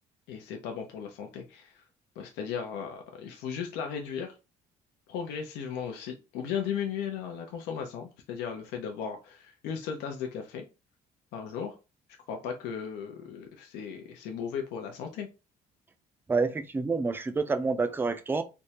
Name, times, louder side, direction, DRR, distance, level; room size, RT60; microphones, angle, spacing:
voice 1, 0.3-1.8 2.2-4.3 5.1-10.6 11.3-11.7 12.3-15.3, left 7 dB, 90° left, 0.6 m, -36 dB
voice 2, 16.3-18.4, right 4 dB, 10° right, 0.3 m, -28 dB
3.4 x 2.1 x 2.8 m
cardioid pair, 110°, 17 cm